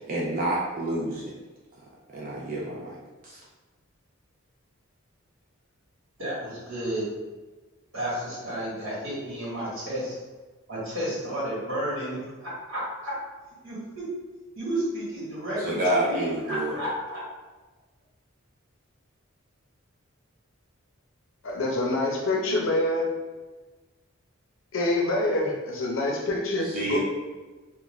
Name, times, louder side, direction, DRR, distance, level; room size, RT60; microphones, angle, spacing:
voice 1, 0.0-1.3 2.1-3.0 3.2-3.4 15.6-16.8 26.7-27.0, right 1 dB, 40° right, -5 dB, 0.4 m, -28 dB
voice 2, 6.2-7.0 7.9-10.2 10.7-13.1 13.6-14.0 14.5-17.2, right 1 dB, 70° right, -8 dB, 1.2 m, -32 dB
voice 3, 21.4-23.1 24.7-27.0, left 2 dB, 70° left, 0 dB, 0.5 m, -26 dB
2.3 x 2.2 x 3.0 m, 1.3 s
head